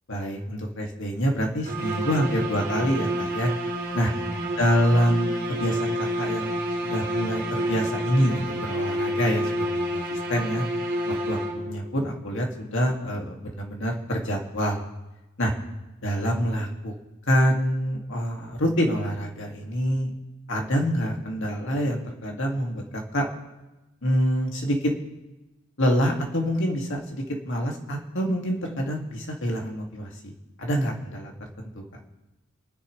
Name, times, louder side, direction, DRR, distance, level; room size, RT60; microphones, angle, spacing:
voice 1, 0.1-3.5 3.9-4.1 4.6-10.6 11.1-14.8 15.4-15.5 16.0-16.9 17.3-20.1 20.5-23.3 24.0-24.9 25.8-30.3 30.6-31.3 31.6-31.8, equal, 60° left, 1 dB, 2.3 m, -26 dB
sound 1, 1.6-11.9, right 1 dB, 45° right, 3.2 m, -29 dB
28.5 x 10.0 x 3.3 m, 1.0 s
head